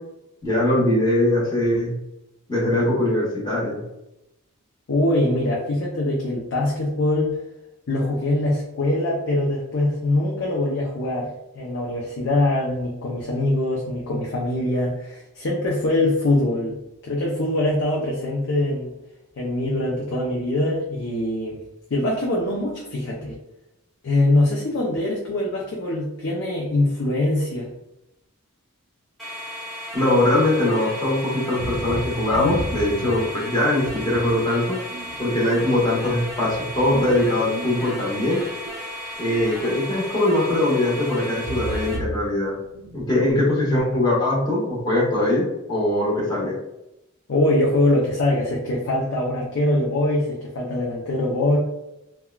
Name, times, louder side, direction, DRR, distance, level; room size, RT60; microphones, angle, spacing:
voice 1, 0.4-1.9 2.5-3.8 29.9-34.8 35.2-38.4 39.2-42.5 42.9-46.6, left 1 dB, 20° left, -5 dB, 1.0 m, -21 dB
voice 2, 4.9-7.4 7.9-16.8 17.0-18.9 19.4-21.6 21.9-23.4 24.0-27.7 47.3-51.6, left 1 dB, 60° left, -3 dB, 0.5 m, -23 dB
sound 1, 29.2-42.0, equal, ahead, 0.9 m, -35 dB
sound 2, 31.6-33.4 33.9-34.5 34.9-38.0 38.5-40.0 40.3-40.6 41.1-42.3 42.6-43.0, right 2 dB, 70° right, 0.4 m, -34 dB
3.5 x 2.2 x 2.3 m, 0.88 s
head